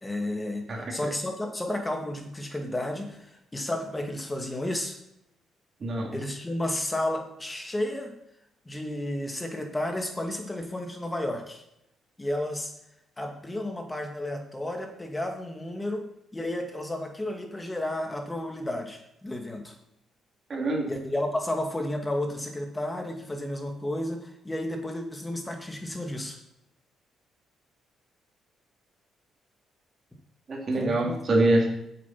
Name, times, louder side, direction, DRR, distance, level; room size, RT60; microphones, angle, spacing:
voice 1, 0.0-5.0 6.1-8.1 8.7-11.6 12.2-12.7 13.2-16.0 16.3-19.7 20.9-26.4 30.7-31.2, left 1 dB, 15° left, 3 dB, 2.2 m, -32 dB
voice 2, 5.8-6.2 20.5-20.9 30.5-31.7, right 2 dB, 45° right, -1 dB, 3.2 m, -24 dB
7.7 x 7.6 x 6.1 m, 0.81 s
cardioid pair, 90°, 0 cm